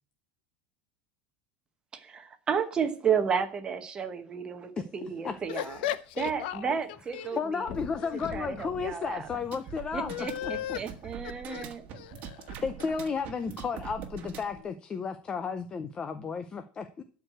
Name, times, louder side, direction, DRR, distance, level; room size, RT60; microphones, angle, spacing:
voice 1, 1.9-5.8 6.2-7.7 8.3-9.3 9.9-11.8, right 7 dB, 15° right, 1.0 m, -32 dB
sound 1, 5.3-6.8 7.1-7.2 7.6-10.2 10.9-11.0, left 6 dB, 35° left, 1.1 m, -45 dB
voice 2, 5.5-6.8 7.1-7.4 8.0-8.3 10.1-10.8 11.2-12.6 14.6-14.7, left 12 dB, 70° left, 0.8 m, -37 dB
voice 3, 7.4-10.5 12.6-17.0, left 5 dB, 15° left, 0.5 m, -33 dB
sound 2, 9.2-14.6, right 8 dB, 30° right, 1.5 m, -43 dB
12.5 x 4.7 x 7.7 m
supercardioid pair, 180°, 5 cm